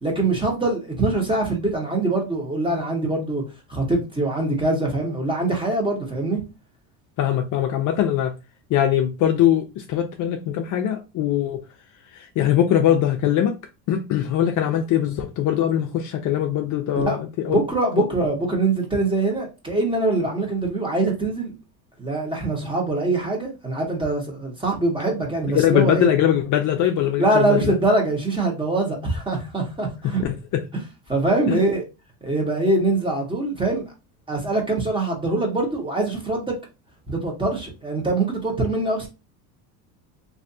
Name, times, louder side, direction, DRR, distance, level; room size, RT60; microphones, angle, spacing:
voice 1, 0.0-3.4 3.7-6.4 16.9-21.5 22.0-26.1 27.2-30.2 31.1-31.8 32.2-33.8 34.3-36.5 37.1-39.1, right 2 dB, 10° right, 1.1 m, -23 dB
voice 2, 7.2-8.3 8.7-11.6 12.1-13.6 13.9-17.6 18.0-18.1 25.5-27.8 30.5-30.6 31.5-31.6, left 10 dB, 45° left, 0.5 m, -21 dB
3.2 x 2.6 x 2.7 m
supercardioid pair, 120°, 44 cm